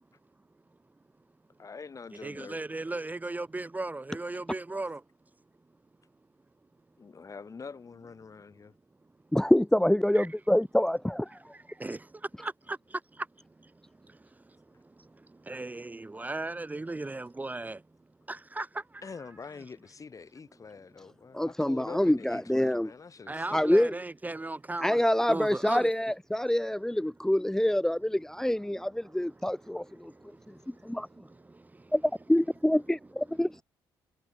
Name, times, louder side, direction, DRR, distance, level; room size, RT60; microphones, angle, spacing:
voice 1, 1.6-2.6 7.0-8.7 19.0-23.9, left 5 dB, 40° left, 5.8 m, -45 dB
voice 2, 2.2-5.0 10.1-10.3 11.8-12.0 12.4-12.8 15.5-17.8 18.3-18.7 23.3-25.0 25.3-25.9, right 2 dB, 20° right, 1.1 m, -36 dB
voice 3, 9.3-11.5 21.3-22.9 23.5-23.9 24.8-30.1 30.8-31.1 31.9-32.0 32.3-33.6, left 1 dB, 5° left, 0.7 m, -26 dB
supercardioid pair, 60°, 9 cm